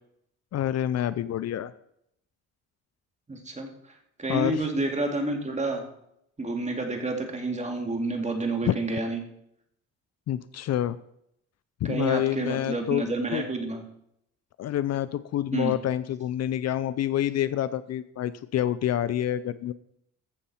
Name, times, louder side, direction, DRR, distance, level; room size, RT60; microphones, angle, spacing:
voice 1, 0.5-1.7 4.3-4.7 8.7-8.8 10.3-11.0 11.8-13.0 13.3-13.4 14.6-19.7, left 11 dB, 60° left, 16 dB, 0.5 m, -27 dB
voice 2, 3.3-5.9 6.4-9.2 11.8-13.8 15.5-15.7, right 2 dB, 25° right, 3 dB, 2.2 m, -29 dB
14.5 x 6.6 x 4.3 m, 0.74 s
cardioid pair, 90°, 30 cm